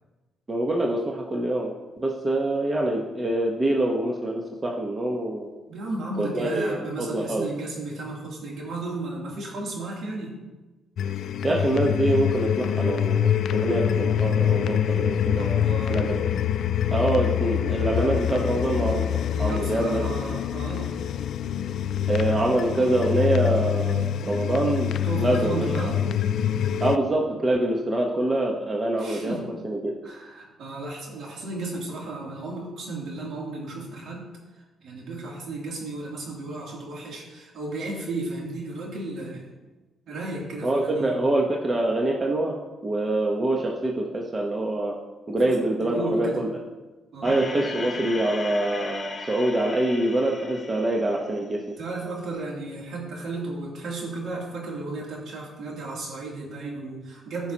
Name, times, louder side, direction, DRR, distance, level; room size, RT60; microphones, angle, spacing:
voice 1, 0.5-1.7 2.0-5.5 6.2-7.5 11.4-15.6 15.9-16.3 16.9-20.3 22.1-25.9 26.8-29.4 29.6-29.9 40.6-42.6 42.8-44.9 45.3-46.5 47.2-51.6, right 1 dB, 25° right, 0 dB, 1.2 m, -25 dB
voice 2, 5.7-10.3 15.4-16.0 19.3-20.9 25.0-26.1 29.0-29.4 30.0-34.3 34.8-39.5 40.1-41.1 45.4-46.4 47.1-47.4 51.8-57.5, right 2 dB, 65° right, -3 dB, 3.0 m, -34 dB
sound 1, 11.0-27.0, left 9 dB, 70° left, 0.4 m, -25 dB
sound 2, 47.2-51.7, left 3 dB, 35° left, 1.3 m, -37 dB
15.0 x 5.8 x 3.0 m, 1.2 s
cardioid pair, 90°, 0 cm